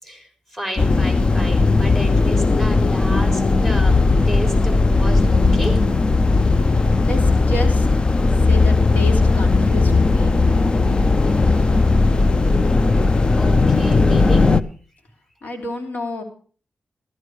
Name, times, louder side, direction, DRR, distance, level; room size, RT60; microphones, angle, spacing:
voice 1, 0.0-5.8 10.8-14.5, equal, 10° left, 2 dB, 3.9 m, -33 dB
sound 1, 0.8-14.6, left 3 dB, 35° left, 0.6 m, -16 dB
voice 2, 7.0-7.9 8.5-10.5 15.4-16.2, left 1 dB, 90° left, 3 dB, 2.9 m, -30 dB
14.5 x 13.5 x 4.7 m, 0.42 s
wide cardioid pair, 120°, 3 cm